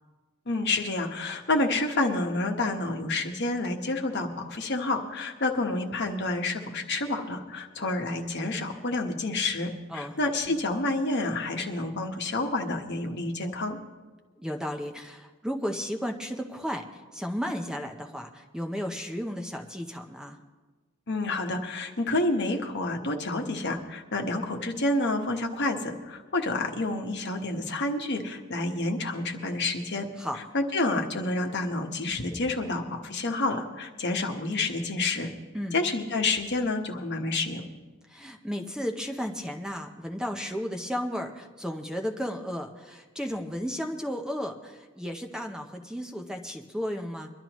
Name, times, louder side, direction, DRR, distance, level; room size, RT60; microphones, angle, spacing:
voice 1, 0.5-13.8 21.1-30.1 30.5-35.3 35.7-37.6, left 2 dB, 55° left, 3 dB, 1.3 m, -29 dB
voice 2, 14.4-20.4 30.2-30.4 35.5-35.8 38.1-47.3, equal, 5° right, 3 dB, 0.7 m, -34 dB
23.0 x 12.0 x 3.0 m, 1.3 s
head